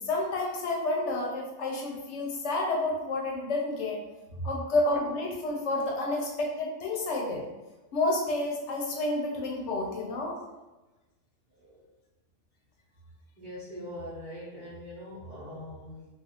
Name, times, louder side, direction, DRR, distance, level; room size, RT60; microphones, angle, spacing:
voice 1, 0.0-4.0 4.4-7.4 7.9-10.4, left 2 dB, 70° left, -1 dB, 0.9 m, -30 dB
voice 2, 13.4-16.1, equal, 45° right, -7 dB, 0.8 m, -41 dB
2.4 x 2.3 x 2.8 m, 1.1 s
omnidirectional pair, 1.3 m